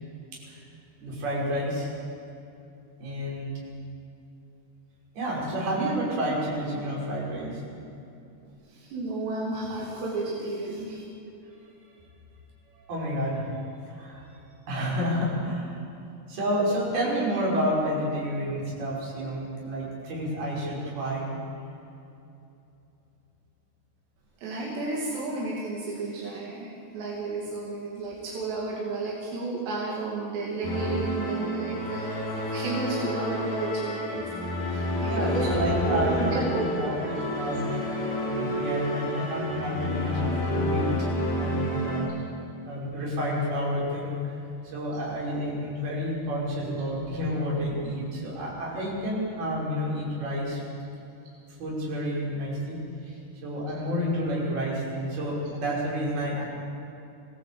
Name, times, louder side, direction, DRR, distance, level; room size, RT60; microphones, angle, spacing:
voice 1, 1.0-1.9 3.0-3.5 5.2-7.6 12.9-14.3 14.7-15.7 16.3-21.4 35.0-37.8 38.0-42.3 42.6-44.3 44.7-50.6 51.6-56.4, equal, 60° right, -5 dB, 7.7 m, -30 dB
voice 2, 8.7-11.0 24.4-35.5 35.9-37.4, right 2 dB, 85° right, -4 dB, 4.8 m, -32 dB
sound 1, 30.6-42.0, left 1 dB, 65° left, 8.8 m, -29 dB
24.5 x 17.5 x 8.6 m, 2.8 s
omnidirectional pair, 4.8 m